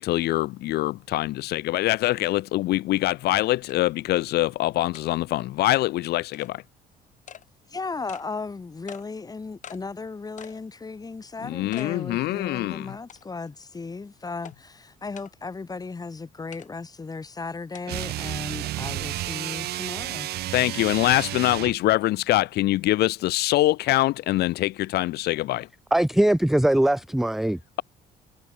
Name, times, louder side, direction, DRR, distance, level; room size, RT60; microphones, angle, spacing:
voice 1, 0.0-6.6 11.4-12.9 20.5-25.7, left 17 dB, 70° left, 0.7 m, -24 dB
sound 1, 3.0-3.1 3.7-3.8 4.2-4.3 4.9-5.1 5.7-5.8 6.3-6.5 7.3-7.5 8.1-8.3 8.9-9.1 9.6-9.8 10.4-10.6 11.0-11.1 11.7-11.9 12.4-12.5 13.1-13.5 14.4-14.6 15.2-15.3 16.5-16.7 17.7-17.8, left 9 dB, 45° left, 3.2 m, -44 dB
voice 2, 7.7-20.3, left 4 dB, 20° left, 3.9 m, -36 dB
sound 2, 17.8-21.8, right 15 dB, 70° right, 0.9 m, -31 dB
voice 3, 25.9-27.6, right 1 dB, ahead, 0.4 m, -21 dB
cardioid pair, 110°, 17 cm